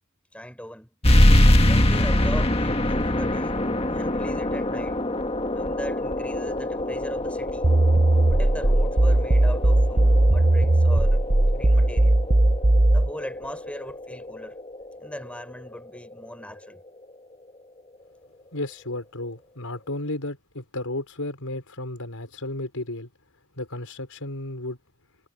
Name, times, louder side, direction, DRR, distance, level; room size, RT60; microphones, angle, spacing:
voice 1, 0.3-0.9 1.6-5.0 5.5-7.7 8.3-12.2 12.9-14.5 15.0-16.8, equal, 5° left, 4.7 m, -39 dB
sound 1, 1.0-16.1, left 1 dB, 30° left, 1.7 m, -24 dB
sound 2, 7.6-13.1, right 1 dB, 30° right, 0.8 m, -18 dB
voice 2, 18.5-23.1 23.6-24.8, left 1 dB, 85° left, 5.2 m, -33 dB
head